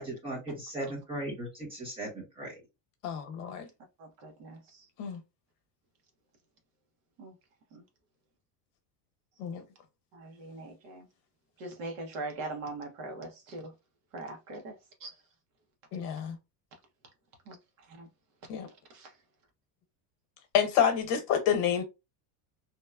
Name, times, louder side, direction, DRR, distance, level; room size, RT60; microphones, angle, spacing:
voice 1, 0.0-2.5, right 1 dB, 10° right, 0.6 m, -37 dB
voice 2, 3.0-3.7 5.0-5.2 9.4-9.6 15.9-16.4 18.5-18.7 20.5-21.8, left 8 dB, 75° left, 0.9 m, -28 dB
voice 3, 4.0-4.9 7.2-7.3 7.7-7.8 10.1-11.1 11.6-13.7 14.1-15.1 17.5-18.1 18.9-19.2, right 2 dB, 55° right, 0.8 m, -42 dB
2.8 x 2.1 x 2.3 m
cardioid pair, 180°, 47 cm